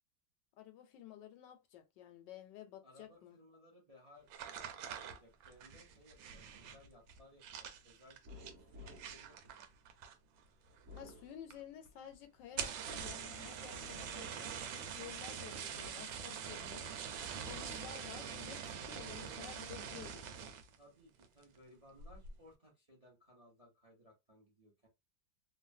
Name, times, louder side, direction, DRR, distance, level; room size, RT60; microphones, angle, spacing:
voice 1, 0.6-3.4 10.9-16.9 17.4-20.2, left 10 dB, 75° left, 1.2 m, -52 dB
voice 2, 2.8-8.2 8.6-9.7 15.5-15.9 20.8-24.9, left 1 dB, 30° right, 0.7 m, -63 dB
sound 1, 4.3-10.4 10.7-11.2 11.5-11.6 11.9-12.0 12.4-20.8 21.2-21.6 22.0-22.4, right 7 dB, 85° right, 1.3 m, -45 dB
sound 2, 8.2-10.2 10.7-12.0 12.5-13.4, left 2 dB, 45° right, 1.3 m, -56 dB
3.2 x 2.2 x 2.5 m
omnidirectional pair, 2.0 m